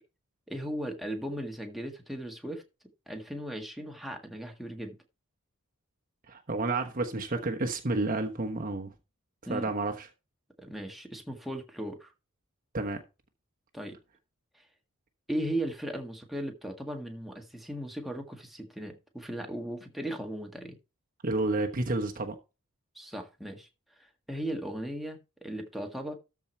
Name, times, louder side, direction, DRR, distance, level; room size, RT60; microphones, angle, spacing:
voice 1, 0.5-2.6 3.1-5.0 9.5-9.7 10.6-12.1 13.7-14.0 14.6-14.7 15.3-20.8 23.0-23.7 24.0-26.1, right 1 dB, ahead, 1.7 m, -37 dB
voice 2, 6.3-8.9 9.5-10.1 12.7-13.0 21.2-22.3, right 2 dB, 40° right, 1.1 m, -30 dB
13.5 x 4.7 x 4.5 m
head